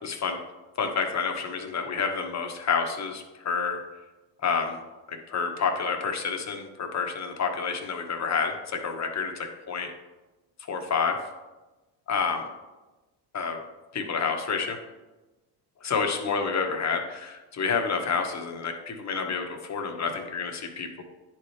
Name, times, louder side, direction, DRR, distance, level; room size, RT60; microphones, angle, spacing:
voice 1, 0.0-0.4 0.8-3.8 4.4-4.8 5.1-9.9 10.7-11.2 12.1-12.5 13.3-13.6 13.9-14.8 15.8-21.0, left 5 dB, 35° left, 4 dB, 1.2 m, -29 dB
10.0 x 4.3 x 3.3 m, 1.1 s
supercardioid pair, 80°, 49 cm